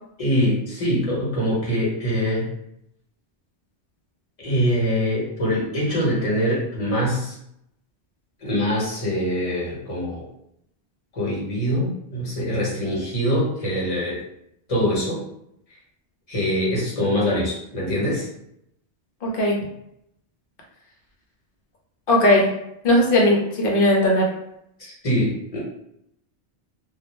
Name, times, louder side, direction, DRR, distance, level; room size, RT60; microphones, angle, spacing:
voice 1, 0.2-2.5 4.4-7.3 8.4-10.3 11.1-14.2 14.7-15.2 16.3-18.3 24.8-25.6, equal, 35° left, -5 dB, 0.9 m, -23 dB
voice 2, 19.2-19.6 22.1-22.5 22.8-24.3, left 1 dB, 55° left, -1 dB, 0.8 m, -18 dB
2.3 x 2.1 x 3.0 m, 0.78 s
omnidirectional pair, 1.2 m